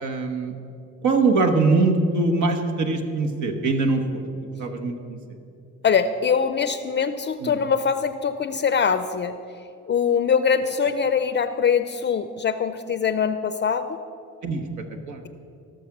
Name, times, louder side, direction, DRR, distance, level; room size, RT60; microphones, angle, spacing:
voice 1, 0.0-0.5 1.0-4.2 4.6-5.2 7.4-7.6 14.4-14.6 15.1-15.2, right 3 dB, 70° right, 4 dB, 1.2 m, -22 dB
voice 2, 5.8-9.4 9.9-14.0, left 6 dB, 35° left, 11 dB, 0.5 m, -23 dB
17.5 x 6.5 x 5.9 m, 2.6 s
cardioid pair, 90°, 30 cm